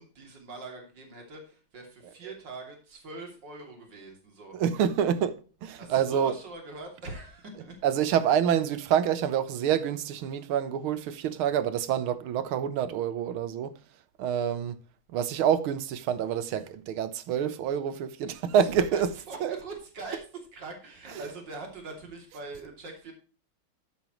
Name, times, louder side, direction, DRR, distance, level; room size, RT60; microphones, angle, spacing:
voice 1, 0.0-4.5 5.8-7.8 18.7-19.0 19.3-20.2 20.5-23.1, right 3 dB, 55° right, 3.5 m, -42 dB
voice 2, 4.5-6.3 7.8-13.7 14.2-14.8 15.1-19.1 19.4-19.5, right 9 dB, 80° right, 1.8 m, -27 dB
12.5 x 9.1 x 3.1 m
omnidirectional pair, 2.3 m